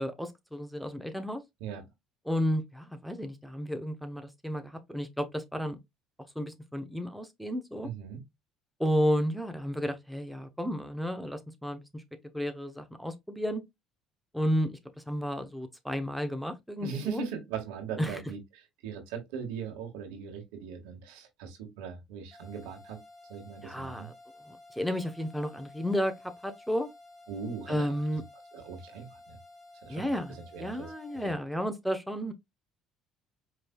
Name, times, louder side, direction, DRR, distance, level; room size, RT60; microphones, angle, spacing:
voice 1, 0.0-1.4 2.3-5.8 6.4-7.9 8.8-12.0 12.3-13.6 14.3-14.8 15.1-17.2 18.0-18.2 23.6-24.1 24.5-26.1 26.4-26.9 27.7-28.2 29.9-32.3, equal, ahead, 0.8 m, -32 dB
voice 2, 7.8-8.2 16.8-23.0 23.3-24.1 27.3-27.8 28.5-29.4 29.8-30.1 30.5-30.9 31.2-31.3, right 7 dB, 85° right, 1.6 m, -39 dB
sound 1, 22.3-31.3, left 2 dB, 20° left, 2.2 m, -53 dB
5.0 x 3.1 x 2.2 m
supercardioid pair, 100°, 0 cm